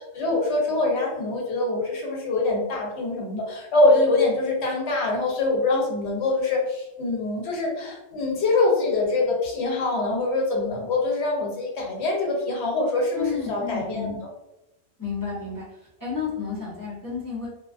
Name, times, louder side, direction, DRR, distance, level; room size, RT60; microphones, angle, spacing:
voice 1, 0.1-14.3, left 2 dB, 65° left, -1 dB, 0.9 m, -24 dB
voice 2, 13.1-14.1 15.0-15.7 16.0-17.5, left 5 dB, 25° left, -8 dB, 0.4 m, -31 dB
2.4 x 2.3 x 2.4 m, 0.94 s
omnidirectional pair, 1.3 m